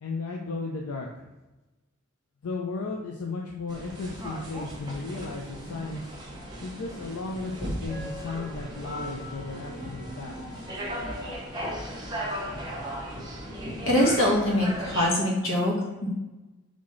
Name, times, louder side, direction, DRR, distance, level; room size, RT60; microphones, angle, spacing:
voice 1, 0.0-1.3 2.4-6.0 6.6-10.6, left 3 dB, 85° left, 0 dB, 0.5 m, -35 dB
sound 1, 3.7-15.1, equal, 20° right, 0.8 m, -36 dB
voice 2, 13.9-15.7 16.0-16.1, left 1 dB, 65° left, -4 dB, 1.4 m, -23 dB
4.2 x 3.6 x 3.1 m, 1.1 s
head